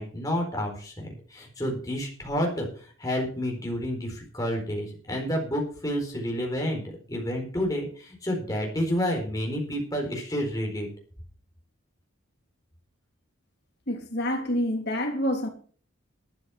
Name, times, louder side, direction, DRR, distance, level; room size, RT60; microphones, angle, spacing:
voice 1, 0.0-2.7 3.0-6.8 7.1-10.9, equal, 15° left, 4.3 m, -29 dB
voice 2, 13.9-15.5, equal, 50° left, 3.0 m, -27 dB
12.0 x 10.0 x 6.0 m
head